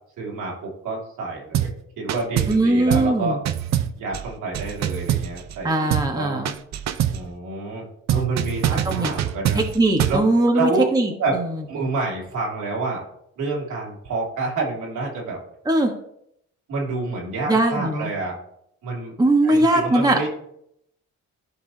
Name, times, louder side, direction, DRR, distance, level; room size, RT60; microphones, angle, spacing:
voice 1, 0.2-1.7 2.0-3.4 4.0-6.4 7.0-9.6 10.1-10.2 10.5-10.9 11.2-11.4 11.7-13.0 13.4-15.4 16.7-18.4 18.8-19.1 19.4-20.3, right 3 dB, 80° right, -3 dB, 2.7 m, -28 dB
sound 1, 1.5-1.8 2.1-2.6 2.9-3.2 3.5-5.6 5.9-6.2 6.5-7.3 8.1-10.3, right 10 dB, 60° right, 0.6 m, -24 dB
voice 2, 2.5-3.4 5.6-6.5 8.7-9.1 9.5-11.5 15.7-15.9 17.5-18.1 19.2-20.3, right 2 dB, 15° right, 2 dB, 1.2 m, -20 dB
14.0 x 4.7 x 2.8 m, 0.75 s
cardioid pair, 90°, 30 cm